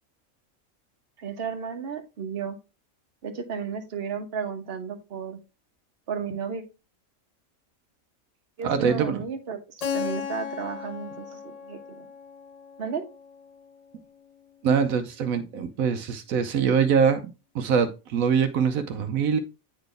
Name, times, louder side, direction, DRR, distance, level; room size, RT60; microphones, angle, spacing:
voice 1, 1.2-2.6 3.2-5.4 6.1-6.6 8.6-12.1 12.8-13.0 16.5-16.7, right 6 dB, 50° right, 1.2 m, -33 dB
voice 2, 8.6-9.2 14.6-19.4, right 6 dB, 80° right, 1.1 m, -24 dB
Keyboard (musical), 9.8-14.4, left 7 dB, 60° left, 0.4 m, -36 dB
8.9 x 4.0 x 3.3 m
omnidirectional pair, 1.4 m